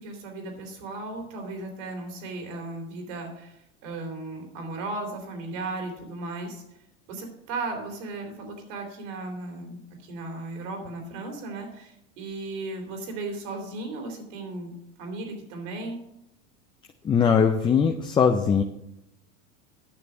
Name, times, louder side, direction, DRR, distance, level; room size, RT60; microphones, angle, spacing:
voice 1, 0.0-6.6 7.1-14.7 15.0-16.0, right 2 dB, 65° right, 3 dB, 3.4 m, -36 dB
voice 2, 17.0-18.6, left 6 dB, 15° left, 4 dB, 0.4 m, -20 dB
9.7 x 6.7 x 6.2 m, 0.80 s
supercardioid pair, 120°, 39 cm